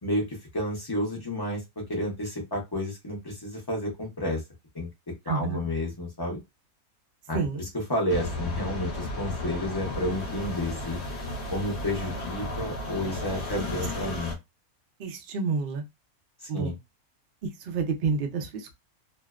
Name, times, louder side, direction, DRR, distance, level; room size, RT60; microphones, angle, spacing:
voice 1, 0.0-1.6 1.9-4.4 4.7-4.9 5.2-6.4 7.3-7.4 7.9-11.0 11.5-14.4 16.4-16.7, left 1 dB, 30° left, 0.4 m, -31 dB
voice 2, 5.3-5.6 7.3-7.6 13.5-13.7 14.0-14.1 15.0-15.8 16.5-16.8 17.4-18.7, right 5 dB, 65° right, 0.5 m, -29 dB
sound 1, 8.1-14.3, left 2 dB, 55° left, 0.9 m, -34 dB
2.6 x 2.1 x 2.3 m
omnidirectional pair, 1.6 m